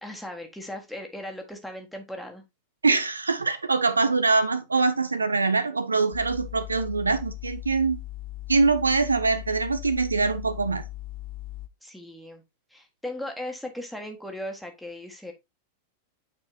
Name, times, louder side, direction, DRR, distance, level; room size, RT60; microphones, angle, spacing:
voice 1, 0.0-2.4 11.8-12.4 12.7-15.3, left 1 dB, ahead, 1.6 m, -37 dB
voice 2, 2.8-8.0 8.5-10.8, right 4 dB, 80° right, 0.6 m, -23 dB
sound 1, 6.1-11.7, left 16 dB, 45° left, 0.4 m, -38 dB
8.8 x 4.4 x 2.8 m
figure-of-eight pair, 90°, 0 cm